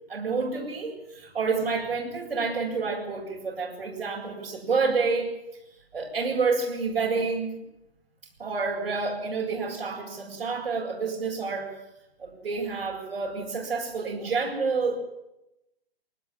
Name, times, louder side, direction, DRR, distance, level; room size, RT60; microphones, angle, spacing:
voice 1, 0.1-5.4 5.9-7.6 8.4-11.7 12.2-15.0, right 4 dB, 85° right, -1 dB, 7.7 m, -28 dB
21.5 x 20.0 x 7.6 m, 0.91 s
hypercardioid pair, 165°, 30 cm